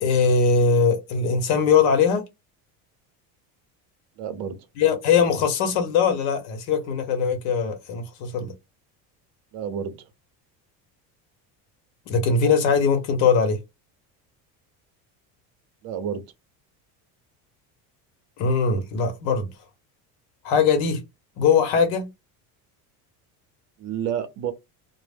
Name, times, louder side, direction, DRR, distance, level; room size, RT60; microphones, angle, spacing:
voice 1, 0.0-2.2 4.8-8.5 12.1-13.6 18.4-19.5 20.4-21.0 21.4-22.1, left 5 dB, 85° left, 0.8 m, -21 dB
voice 2, 4.2-4.6 9.5-10.0 15.8-16.2 23.8-24.5, right 8 dB, 55° right, 0.7 m, -29 dB
2.0 x 2.0 x 3.3 m
cardioid pair, 160°, 41 cm